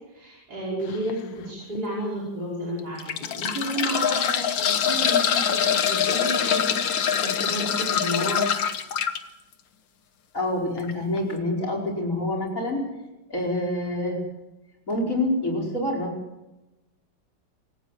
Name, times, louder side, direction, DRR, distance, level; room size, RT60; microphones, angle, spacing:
voice 1, 0.1-6.8 7.2-8.4, right 1 dB, 55° right, -4 dB, 6.0 m, -32 dB
sound 1, 0.9-1.1 1.8-1.9 2.8-9.2 10.8-10.9 11.2-11.3, left 8 dB, 75° left, 1.9 m, -24 dB
voice 2, 10.3-12.8 13.3-14.2 14.9-16.1, left 1 dB, 40° left, 2 dB, 5.5 m, -26 dB
26.5 x 15.0 x 7.6 m, 1.0 s
omnidirectional pair, 2.1 m